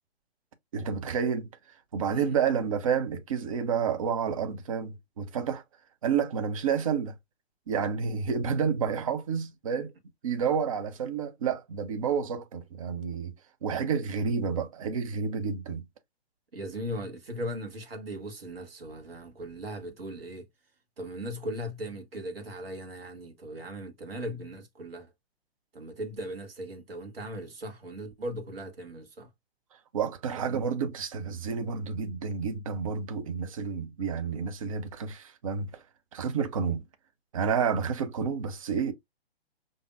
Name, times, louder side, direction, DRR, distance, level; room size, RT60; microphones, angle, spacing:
voice 1, 0.7-1.5 1.9-5.6 6.0-7.1 7.7-9.9 10.2-13.3 13.6-15.9 29.9-35.8 36.1-36.8 37.3-38.9, right 6 dB, 30° right, 0.5 m, -30 dB
voice 2, 16.5-20.5 21.0-25.1 25.7-29.3 30.4-30.6, equal, 60° right, 1.2 m, -38 dB
5.0 x 2.6 x 2.3 m
figure-of-eight pair, 130°, 32 cm